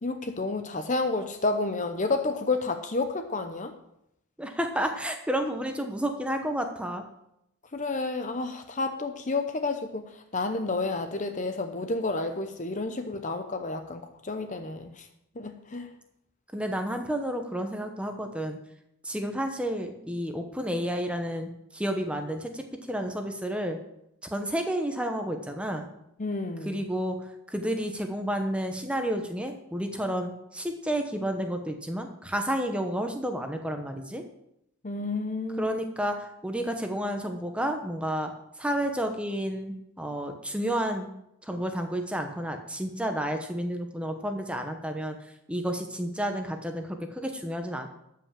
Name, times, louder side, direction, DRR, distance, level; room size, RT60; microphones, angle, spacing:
voice 1, 0.0-3.7 7.7-15.1 15.4-15.9 26.2-26.8 34.8-35.8, left 3 dB, 35° left, 7 dB, 0.7 m, -30 dB
voice 2, 4.4-7.0 16.5-18.6 19.0-23.8 24.3-25.9 26.6-34.2 35.6-38.3 38.6-41.1 41.4-47.9, equal, 5° right, 5 dB, 1.0 m, -31 dB
12.5 x 5.7 x 7.3 m, 0.81 s
head